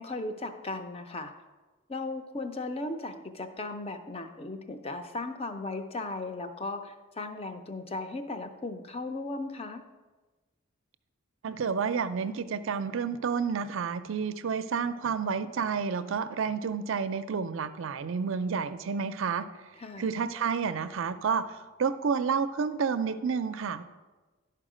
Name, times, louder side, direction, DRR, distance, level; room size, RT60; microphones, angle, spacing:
voice 1, 0.0-1.3 1.9-9.8 19.8-20.1, left 2 dB, 25° left, 7 dB, 0.5 m, -36 dB
voice 2, 11.4-19.4 20.0-23.8, right 6 dB, 60° right, 12 dB, 0.4 m, -30 dB
11.5 x 4.6 x 4.9 m, 1.2 s
head